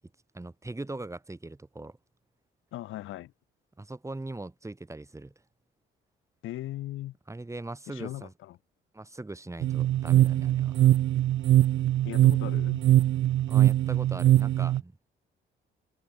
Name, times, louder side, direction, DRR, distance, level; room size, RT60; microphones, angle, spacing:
voice 1, 0.3-2.0 3.8-5.3 7.3-8.3 8.9-10.9 13.5-15.0, right 2 dB, 15° right, 5.1 m, -40 dB
voice 2, 2.7-3.3 6.4-7.2 7.9-8.6 12.0-12.8, left 15 dB, 90° left, 6.3 m, -38 dB
sound 1, 9.6-14.8, right 13 dB, 70° right, 1.0 m, -22 dB
cardioid pair, 90°, 20 cm